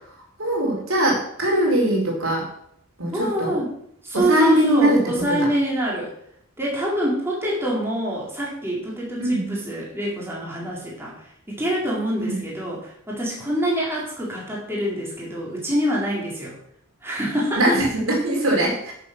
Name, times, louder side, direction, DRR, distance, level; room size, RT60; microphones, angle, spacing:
voice 1, 0.4-2.4 3.0-3.6 4.1-5.5 9.2-9.5 12.2-12.4 17.5-18.9, right 1 dB, 70° right, -1 dB, 4.5 m, -21 dB
voice 2, 3.1-3.7 4.0-6.1 6.6-11.1 11.5-12.8 13.1-16.5 17.0-17.8, right 1 dB, 10° right, -5 dB, 4.1 m, -25 dB
12.0 x 7.4 x 6.5 m, 0.71 s
head